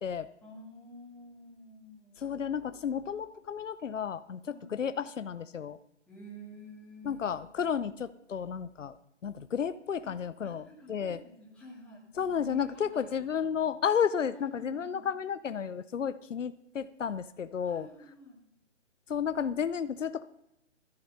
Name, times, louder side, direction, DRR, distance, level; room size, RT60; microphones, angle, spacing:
voice 1, 0.4-2.3 4.5-4.7 6.1-7.2 10.0-10.2 10.4-12.0 12.3-13.2 13.5-13.7 14.2-15.0 17.6-18.4, equal, 5° left, -7 dB, 2.6 m, -49 dB
voice 2, 2.2-5.8 7.0-8.9 9.2-11.2 12.2-17.9 19.1-20.2, left 7 dB, 85° left, 14 dB, 0.7 m, -32 dB
13.5 x 8.1 x 5.4 m, 0.82 s
hypercardioid pair, 155°, 36 cm